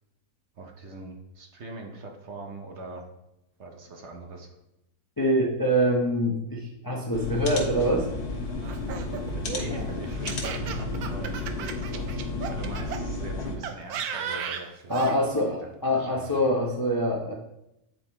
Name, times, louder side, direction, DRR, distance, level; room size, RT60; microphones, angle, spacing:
voice 1, 0.6-3.0 3.6-4.6 9.3-15.6 15.9-16.4, right 2 dB, 55° right, 2 dB, 1.0 m, -42 dB
voice 2, 5.2-8.1 14.9-17.3, equal, 30° left, -1 dB, 0.4 m, -25 dB
sound 1, 7.1-13.6, left 2 dB, 85° left, 1.7 m, -32 dB
Laughter, 8.6-13.0 13.6-15.2, right 7 dB, 75° right, 1.1 m, -35 dB
8.9 x 3.9 x 4.3 m, 0.87 s
omnidirectional pair, 1.7 m